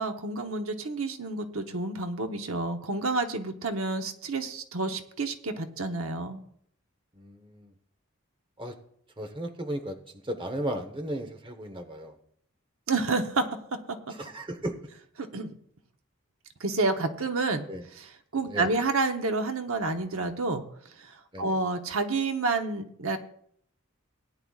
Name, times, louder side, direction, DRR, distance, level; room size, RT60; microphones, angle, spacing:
voice 1, 0.0-6.4 12.9-13.4 15.3-15.5 16.6-17.6 18.0-20.6 21.0-23.2, right 3 dB, 75° right, 6 dB, 1.0 m, -29 dB
voice 2, 7.1-7.7 8.6-8.8 9.2-10.0 10.2-12.1 14.1-14.8 17.7-17.8 18.5-18.7 21.3-21.6, right 1 dB, 25° right, 5 dB, 0.9 m, -35 dB
18.0 x 9.9 x 2.4 m, 0.65 s
head